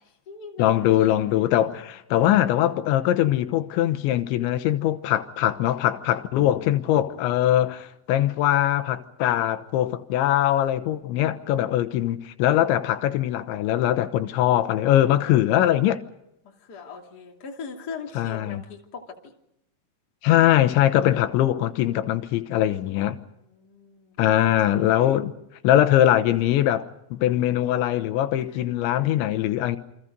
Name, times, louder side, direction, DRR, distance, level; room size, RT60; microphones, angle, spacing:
voice 1, 0.0-1.4 6.3-7.0 10.8-11.6 16.4-19.3 23.3-25.2 28.5-28.6, left 5 dB, 25° left, 2.4 m, -42 dB
voice 2, 0.6-16.0 18.2-18.6 20.2-23.2 24.2-25.3 25.6-29.8, left 12 dB, 85° left, 3.4 m, -22 dB
28.5 x 25.0 x 5.3 m
omnidirectional pair, 5.2 m